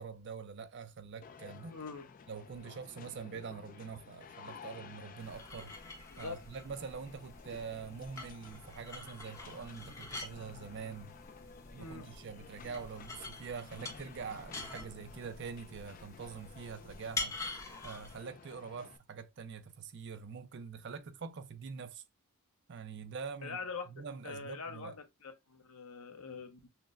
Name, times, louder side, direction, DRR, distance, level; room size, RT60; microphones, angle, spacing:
voice 1, 0.0-1.8 2.3-5.7 6.2-11.1 11.7-17.4 17.8-22.0 22.7-23.6 23.9-25.0, right 5 dB, 50° right, 0.4 m, -45 dB
sound 1, 1.2-19.0, left 5 dB, 40° left, 0.3 m, -54 dB
voice 2, 1.7-2.1 6.1-6.4 11.8-12.1 23.4-24.9 25.2-26.7, left 4 dB, 75° left, 0.8 m, -44 dB
sound 2, 5.2-18.2, left 3 dB, 15° left, 0.8 m, -46 dB
5.7 x 2.1 x 2.4 m
head